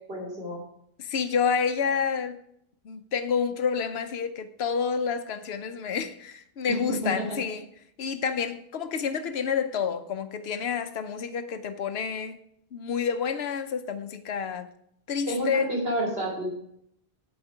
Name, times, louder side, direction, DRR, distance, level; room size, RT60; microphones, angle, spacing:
voice 1, 0.1-0.6 6.7-7.4 15.3-16.5, equal, 75° right, 3.3 m, -29 dB
voice 2, 1.0-2.4 2.8-7.7 8.0-12.4 12.7-14.7 15.1-15.7, left 6 dB, 85° left, 1.0 m, -29 dB
8.0 x 8.0 x 4.9 m
omnidirectional pair, 1.0 m